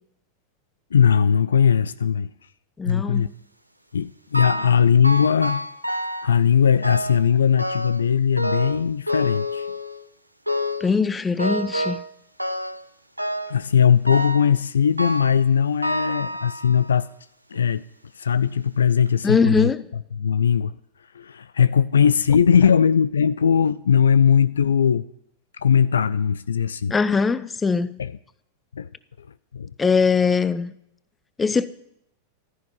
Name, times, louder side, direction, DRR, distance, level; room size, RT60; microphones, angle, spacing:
voice 1, 0.9-2.3 2.8-3.3 3.9-5.7 6.2-9.7 13.5-17.1 17.5-17.8 18.2-19.7 20.1-20.7 21.1-25.1 25.5-26.9 28.0-28.1 28.7-28.9 29.5-29.7, left 7 dB, 70° left, 0.5 m, -19 dB
voice 2, 2.8-3.3 10.8-12.0 19.2-19.9 26.9-28.0 29.8-30.7 31.4-31.7, left 5 dB, 15° left, 0.9 m, -21 dB
sound 1, 4.3-4.8 5.0-6.3 6.8-7.3 7.6-8.1 8.4-10.0 10.5-10.9 11.4-12.1 12.4-12.8 13.2-13.6 14.1-14.5 15.0-15.4 15.8-16.9 17.5-17.6 18.4-18.5 19.0-19.1, equal, 90° right, 1.0 m, -28 dB
15.5 x 13.0 x 5.6 m
figure-of-eight pair, 90°, 0 cm